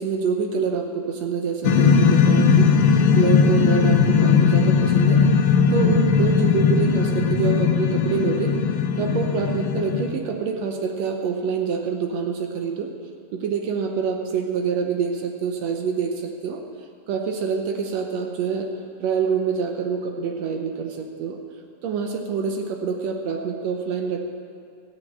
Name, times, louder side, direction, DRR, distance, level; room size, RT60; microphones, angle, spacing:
voice 1, 0.0-2.7 3.1-5.2 5.7-8.5 9.0-12.9 13.3-16.6 17.1-18.7 19.0-21.4 21.8-24.3, right 6 dB, 70° right, 3 dB, 1.8 m, -26 dB
sound 1, 1.6-10.1, left 6 dB, 80° left, 2.2 m, -18 dB
13.5 x 6.7 x 8.5 m, 2.3 s
omnidirectional pair, 3.5 m